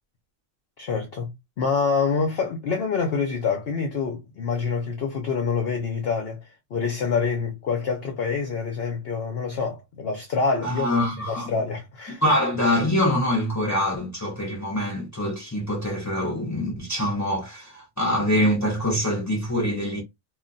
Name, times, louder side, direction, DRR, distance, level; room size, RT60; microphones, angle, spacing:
voice 1, 0.8-1.3 1.6-12.2, left 5 dB, 60° left, 0.7 m, -26 dB
voice 2, 10.6-11.5 12.2-20.0, equal, 20° left, 0.4 m, -24 dB
2.4 x 2.2 x 3.8 m
omnidirectional pair, 1.4 m